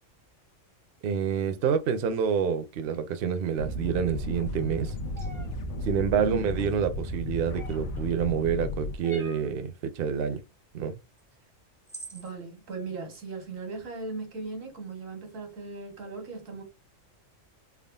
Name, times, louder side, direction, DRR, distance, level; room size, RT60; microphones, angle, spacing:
voice 1, 1.0-4.9 5.8-10.4 10.7-11.0, right 7 dB, 65° right, 0.6 m, -28 dB
sound 1, 3.6-9.0, left 1 dB, 75° left, 0.9 m, -34 dB
sound 2, 5.1-5.5 7.5-8.0 9.0-9.5 11.2-11.3 11.9-12.3, right 2 dB, 5° left, 0.4 m, -44 dB
voice 2, 6.1-6.6 12.1-16.6, right 4 dB, 90° right, 1.5 m, -38 dB
3.5 x 2.0 x 2.2 m
omnidirectional pair, 1.3 m